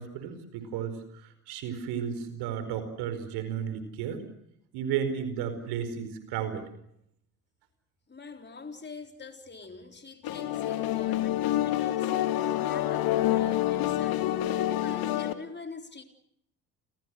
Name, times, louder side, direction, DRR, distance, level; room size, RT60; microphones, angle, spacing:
voice 1, 0.0-4.3 4.7-6.7, right 8 dB, 60° right, 4.9 m, -33 dB
voice 2, 8.1-14.4 14.7-16.0, left 4 dB, 25° left, 3.9 m, -44 dB
sound 1, 10.2-15.3, left 13 dB, 50° left, 2.2 m, -27 dB
29.5 x 27.5 x 6.3 m
figure-of-eight pair, 55°, 45 cm